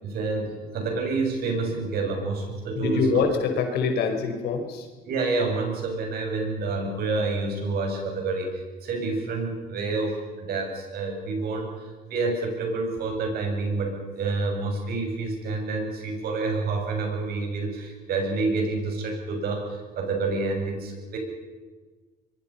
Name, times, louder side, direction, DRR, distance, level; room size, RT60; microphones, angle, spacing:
voice 1, 0.0-3.2 5.0-21.2, right 3 dB, 65° right, 3 dB, 7.3 m, -28 dB
voice 2, 2.7-4.9, left 5 dB, 75° left, 5 dB, 5.0 m, -25 dB
24.5 x 22.5 x 5.8 m, 1.3 s
cardioid pair, 110°, 17 cm